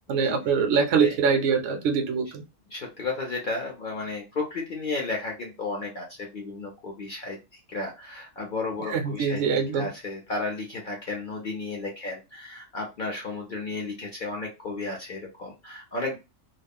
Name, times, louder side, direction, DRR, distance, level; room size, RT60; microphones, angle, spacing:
voice 1, 0.1-2.4 8.9-9.9, right 6 dB, 65° right, 5 dB, 0.8 m, -24 dB
voice 2, 2.7-7.4 7.7-9.4 9.7-16.2, left 3 dB, 55° left, -1 dB, 0.6 m, -33 dB
2.3 x 2.0 x 3.5 m, 0.27 s
omnidirectional pair, 1.3 m